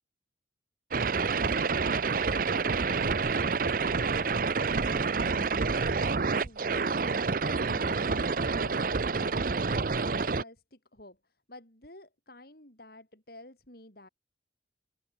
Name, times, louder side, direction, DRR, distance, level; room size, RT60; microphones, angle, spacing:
sound 1, 0.9-10.4, right 4 dB, 45° right, 0.7 m, -28 dB
voice 1, 1.3-14.1, left 1 dB, 55° left, 7.3 m, -51 dB
head